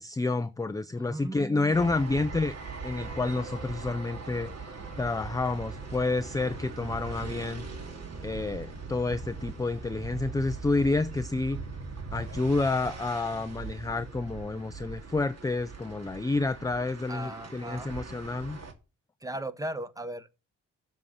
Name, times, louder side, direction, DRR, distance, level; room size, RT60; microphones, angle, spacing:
voice 1, 0.0-2.6 2.8-7.6 8.2-11.6 12.1-18.6, left 3 dB, 10° left, 0.5 m, -29 dB
voice 2, 1.0-1.9 17.1-17.9 19.2-20.4, right 1 dB, 10° right, 1.0 m, -37 dB
sound 1, 1.7-18.7, right 4 dB, 50° right, 2.4 m, -41 dB
7.6 x 6.3 x 7.0 m
cardioid pair, 70°, 32 cm